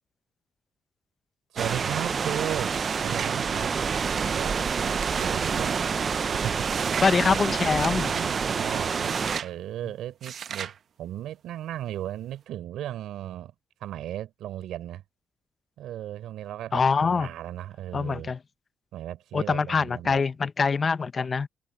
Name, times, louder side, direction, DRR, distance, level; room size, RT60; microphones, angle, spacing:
voice 1, 1.5-2.8 3.0-3.7 4.1-5.8 6.3-6.7 8.1-10.7 11.0-13.5 13.8-15.0 15.8-18.3 18.9-20.2, right 12 dB, 80° right, 3.7 m, -36 dB
sound 1, 1.6-9.4, right 6 dB, 45° right, 0.4 m, -27 dB
sound 2, 2.7-3.4 3.9-5.6 6.7-7.2 7.8-8.3 9.0-9.5 10.2-10.8, right 8 dB, 60° right, 0.9 m, -39 dB
voice 2, 7.0-8.1 16.7-17.3 17.9-18.4 19.3-21.5, left 5 dB, 35° left, 0.7 m, -24 dB
cardioid pair, 90°, 0 cm